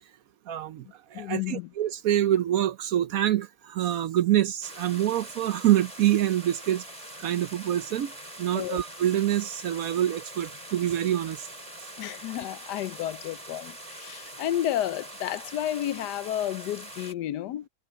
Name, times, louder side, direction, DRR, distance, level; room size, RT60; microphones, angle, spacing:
voice 1, 0.5-0.8 1.1-6.8 7.2-8.1 8.4-11.5, right 12 dB, 65° right, 1.0 m, -26 dB
voice 2, 1.1-1.7 8.5-8.8 12.0-17.7, left 12 dB, 80° left, 1.2 m, -31 dB
sound 1, 4.6-17.1, right 1 dB, 20° right, 6.0 m, -43 dB
omnidirectional pair, 1.8 m